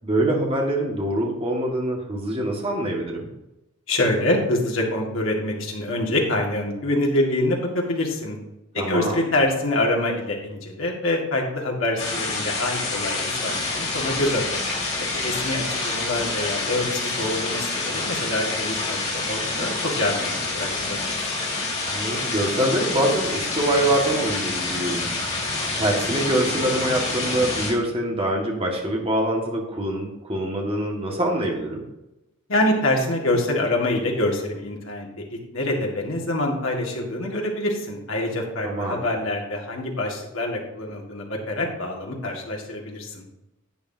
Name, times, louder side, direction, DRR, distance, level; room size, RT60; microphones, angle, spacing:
voice 1, 0.0-3.3 8.8-9.3 21.9-25.0 25.8-31.9 38.6-39.0, right 1 dB, 25° right, -1 dB, 1.8 m, -24 dB
voice 2, 3.9-8.4 8.7-14.4 15.2-21.3 32.5-43.3, left 1 dB, 65° left, 0 dB, 2.0 m, -25 dB
sound 1, 12.0-27.7, left 3 dB, 30° left, 2.8 m, -27 dB
11.0 x 8.4 x 2.8 m, 0.92 s
head